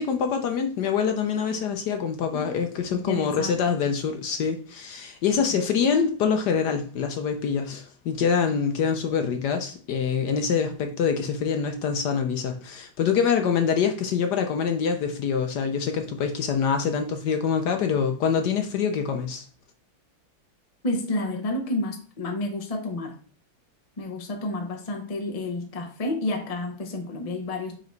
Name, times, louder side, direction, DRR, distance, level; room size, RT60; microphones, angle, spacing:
voice 1, 0.0-19.4, left 6 dB, 65° left, 5 dB, 1.1 m, -25 dB
voice 2, 2.9-3.5 5.5-5.6 20.8-23.1 24.0-27.8, left 2 dB, 45° left, 3 dB, 0.4 m, -30 dB
5.3 x 3.9 x 4.5 m, 0.41 s
omnidirectional pair, 2.3 m